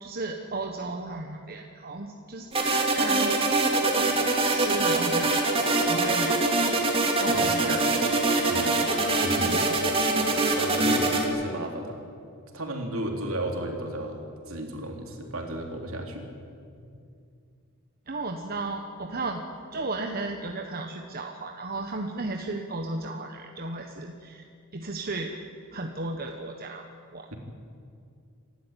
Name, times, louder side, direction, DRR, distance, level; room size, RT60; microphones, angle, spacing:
voice 1, 0.0-3.3 3.9-4.1 4.4-6.4 6.7-6.8 7.2-7.9 18.1-19.4 19.7-24.4 24.7-25.3 25.7-26.9 27.1-27.3, right 2 dB, 45° right, 3 dB, 1.2 m, -34 dB
sound 1, 2.5-11.3, right 2 dB, 25° right, 2.5 m, -24 dB
voice 2, 7.3-7.9 8.5-8.8 9.2-9.7 10.5-12.1 12.5-14.2 14.5-16.3, right 1 dB, 70° right, 2 dB, 3.3 m, -34 dB
27.0 x 13.0 x 9.0 m, 2.4 s
head